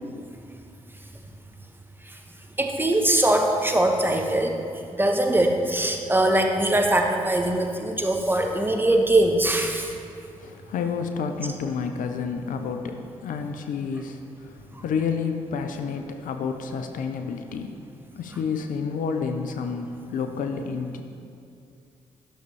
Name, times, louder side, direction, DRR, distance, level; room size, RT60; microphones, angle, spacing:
voice 1, 2.6-4.6 4.9-9.9 14.7-14.8, right 1 dB, 15° right, 3 dB, 1.1 m, -22 dB
voice 2, 10.4-17.8 18.1-21.0, left 5 dB, 65° left, 6 dB, 0.6 m, -30 dB
10.5 x 6.6 x 3.3 m, 2.5 s
hypercardioid pair, 45°, 15 cm